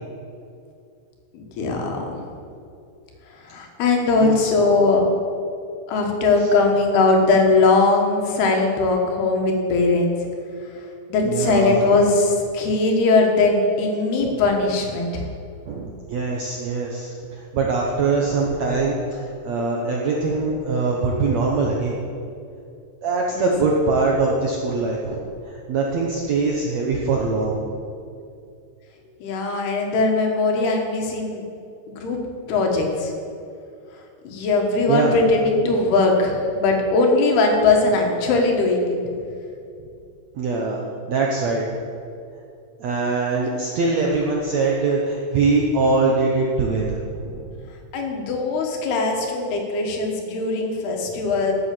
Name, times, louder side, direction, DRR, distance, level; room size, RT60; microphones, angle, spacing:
voice 1, 1.3-2.2 3.4-5.0 5.9-10.1 11.1-15.3 23.3-23.5 29.2-31.4 31.9-32.2 32.5-33.1 34.3-39.0 47.9-51.5, left 3 dB, 75° left, 2 dB, 3.5 m, -20 dB
voice 2, 11.2-11.9 14.2-14.4 15.7-22.0 23.0-27.7 34.9-35.2 40.3-40.8 41.1-41.6 42.8-47.0 47.2-47.4 51.1-51.3, right 3 dB, 80° right, -1 dB, 1.5 m, -23 dB
11.5 x 8.1 x 7.7 m, 2.5 s
omnidirectional pair, 4.7 m